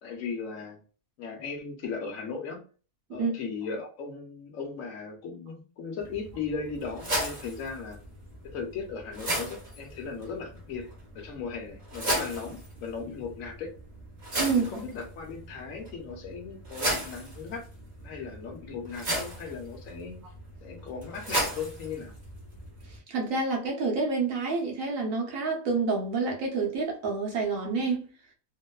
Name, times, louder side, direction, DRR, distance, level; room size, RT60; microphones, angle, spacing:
voice 1, 0.0-0.8 1.2-2.6 3.1-8.0 8.4-13.7 14.4-17.7 18.0-20.2 20.6-22.2, left 5 dB, 70° left, 1.0 m, -37 dB
sound 1, 6.0-23.0, right 1 dB, 35° right, 0.9 m, -36 dB
voice 2, 23.1-28.1, right 4 dB, 70° right, 1.1 m, -28 dB
2.9 x 2.1 x 2.2 m
omnidirectional pair, 1.5 m